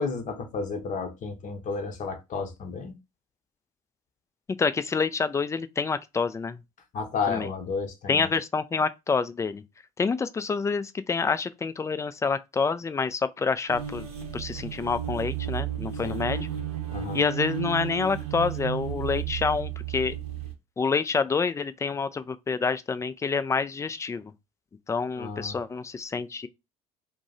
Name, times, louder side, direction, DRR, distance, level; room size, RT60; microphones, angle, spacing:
voice 1, 0.0-3.0 6.9-8.3 16.0-16.2 16.9-17.2 25.2-25.6, left 4 dB, 40° left, 0.8 m, -32 dB
voice 2, 4.6-6.6 7.3-7.5 8.1-9.6 10.0-14.1 14.3-16.5 17.1-20.1 20.8-24.3 24.9-26.5, left 5 dB, 15° left, 0.3 m, -27 dB
sound 1, 13.7-20.5, right 9 dB, 80° right, 0.7 m, -33 dB
2.6 x 2.0 x 3.9 m
figure-of-eight pair, 60°, 19 cm